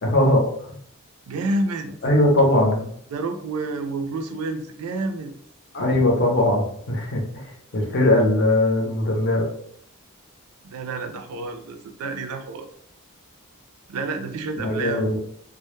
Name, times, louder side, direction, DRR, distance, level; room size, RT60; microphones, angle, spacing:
voice 1, 0.0-0.4 2.0-2.8 5.7-7.4 7.7-9.5 14.6-15.2, left 1 dB, 50° left, 0 dB, 0.6 m, -20 dB
voice 2, 1.3-2.0 3.1-5.3 10.6-12.7 13.9-15.1, right 2 dB, 80° right, 6 dB, 0.4 m, -29 dB
2.1 x 2.0 x 3.0 m, 0.65 s
head